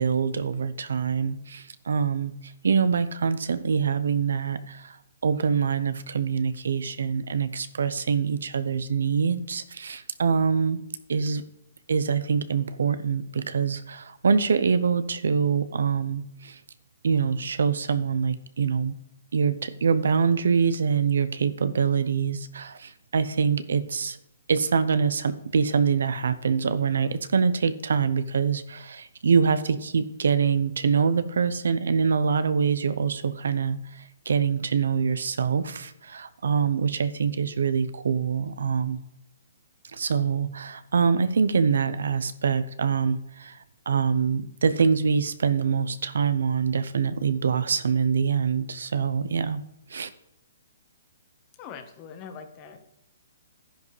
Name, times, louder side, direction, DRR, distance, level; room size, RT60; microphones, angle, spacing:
voice 1, 0.0-2.3 2.6-5.0 5.2-10.8 11.1-11.4 11.9-16.6 17.0-18.9 19.3-24.2 24.5-39.0 39.9-43.6 43.9-49.6 49.9-50.1, right 6 dB, 80° right, 13 dB, 0.8 m, -25 dB
voice 2, 51.6-52.8, left 6 dB, 30° left, 6 dB, 1.4 m, -42 dB
11.0 x 10.5 x 3.3 m, 0.79 s
hypercardioid pair, 150°, 0 cm